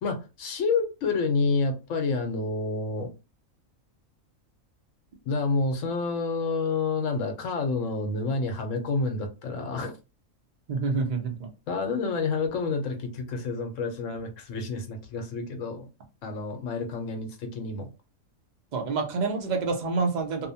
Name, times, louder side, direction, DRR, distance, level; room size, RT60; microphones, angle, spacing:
voice 1, 0.0-3.1 5.2-9.9 11.7-15.9 16.2-17.9, left 4 dB, 75° left, 1.0 m, -29 dB
voice 2, 10.7-11.5 18.7-20.5, right 4 dB, 45° right, 0.6 m, -27 dB
2.7 x 2.2 x 2.7 m
omnidirectional pair, 1.4 m